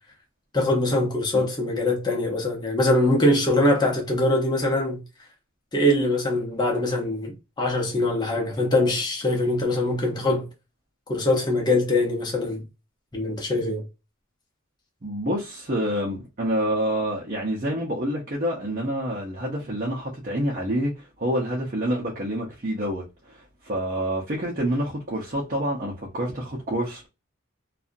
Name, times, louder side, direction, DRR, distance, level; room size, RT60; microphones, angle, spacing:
voice 1, 0.5-5.0 5.7-10.4 11.1-12.6 13.1-13.8, left 1 dB, 20° left, 0.8 m, -23 dB
voice 2, 15.0-27.1, right 1 dB, 40° right, 0.7 m, -27 dB
2.7 x 2.4 x 2.5 m
head